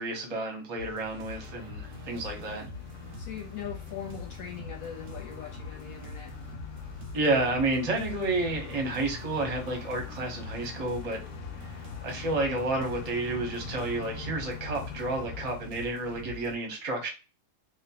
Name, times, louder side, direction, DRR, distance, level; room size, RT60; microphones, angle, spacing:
voice 1, 0.0-2.7 7.1-11.2 12.0-17.1, right 2 dB, 40° right, 2 dB, 0.5 m, -30 dB
sound 1, 0.8-16.6, left 1 dB, 85° right, 1.2 m, -44 dB
sound 2, 1.3-15.6, left 8 dB, 80° left, 0.6 m, -44 dB
voice 2, 3.2-6.3, left 8 dB, 65° left, -1 dB, 1.0 m, -41 dB
2.7 x 2.1 x 2.8 m, 0.31 s
omnidirectional pair, 1.8 m